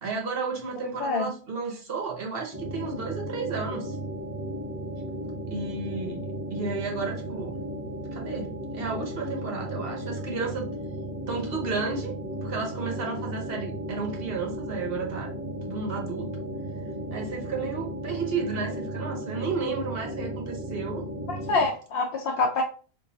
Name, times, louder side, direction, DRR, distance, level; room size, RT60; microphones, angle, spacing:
voice 1, 0.0-4.0 5.5-6.2 6.5-7.6 8.1-10.7 11.3-12.2 12.4-15.3 15.6-16.3 17.1-21.1, right 4 dB, 65° right, 1 dB, 1.1 m, -32 dB
sound 1, 2.5-21.7, right 1 dB, 20° right, 0.5 m, -35 dB
voice 2, 21.3-22.6, left 3 dB, 70° left, 1 dB, 0.8 m, -26 dB
3.7 x 2.2 x 3.8 m, 0.39 s
omnidirectional pair, 1.1 m